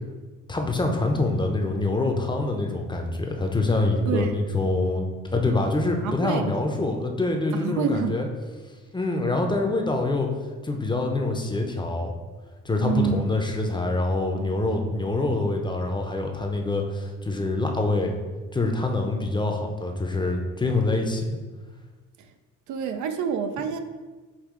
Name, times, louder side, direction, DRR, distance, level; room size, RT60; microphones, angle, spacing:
voice 1, 0.5-5.1 5.3-8.3 8.9-10.3 10.6-12.1 12.6-18.2 18.5-21.4, left 2 dB, 15° left, 2 dB, 0.5 m, -25 dB
voice 2, 6.0-6.5 7.5-8.2 12.8-13.3 22.2-22.3 22.7-23.8, right 7 dB, 75° right, 8 dB, 0.4 m, -27 dB
5.4 x 2.6 x 3.7 m, 1.3 s
cardioid pair, 90°, 30 cm